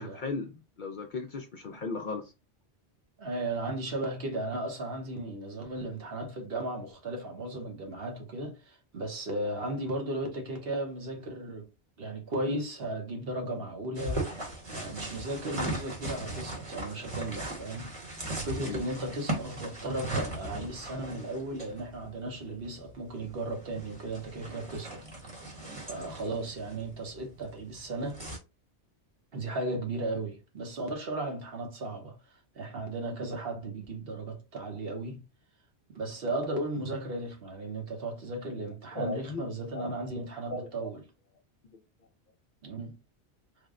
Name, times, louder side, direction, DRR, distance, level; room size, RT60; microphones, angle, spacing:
voice 1, 0.0-2.3 18.6-18.8 25.9-26.1 38.9-40.2 40.5-40.9 41.7-41.8, left 3 dB, 60° left, 0.6 m, -37 dB
voice 2, 3.2-11.7 12.0-14.3 14.7-17.9 18.4-25.0 25.8-28.2 29.3-32.2 32.5-35.2 35.9-41.0 42.6-42.9, right 2 dB, 60° right, 1.1 m, -35 dB
sound 1, 13.9-28.4, right 1 dB, 30° right, 1.0 m, -38 dB
3.4 x 2.1 x 3.5 m
omnidirectional pair, 1.2 m